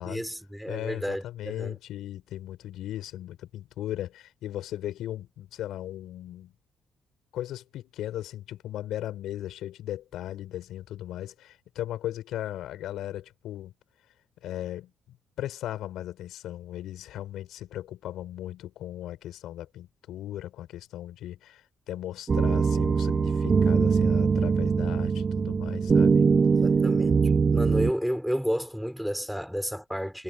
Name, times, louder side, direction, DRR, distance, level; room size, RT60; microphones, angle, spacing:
voice 1, 0.0-1.8 26.6-30.2, equal, ahead, 6.3 m, -31 dB
voice 2, 0.7-6.5 7.3-13.7 14.4-26.2, left 13 dB, 85° left, 7.0 m, -37 dB
sound 1, 22.3-27.9, right 5 dB, 40° right, 0.9 m, -22 dB
cardioid pair, 90°, 0 cm